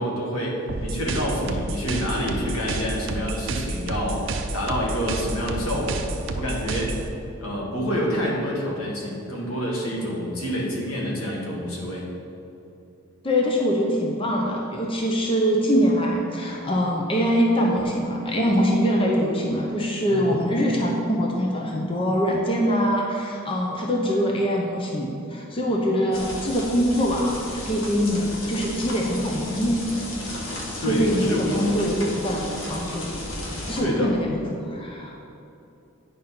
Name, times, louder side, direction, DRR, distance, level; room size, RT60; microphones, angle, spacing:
voice 1, 0.0-6.1 6.3-7.0 7.4-12.0 20.1-20.4 30.8-31.6 33.8-34.1, equal, 85° left, -3 dB, 1.8 m, -27 dB
sound 1, 0.7-7.1, right 2 dB, 65° right, 0.6 m, -30 dB
voice 2, 13.2-29.8 30.9-32.4 32.7-33.1 33.7-35.1, equal, 25° left, -1 dB, 0.7 m, -23 dB
sound 2, 26.1-33.8, left 1 dB, 70° left, 1.2 m, -34 dB
9.4 x 5.5 x 4.2 m, 2.8 s
head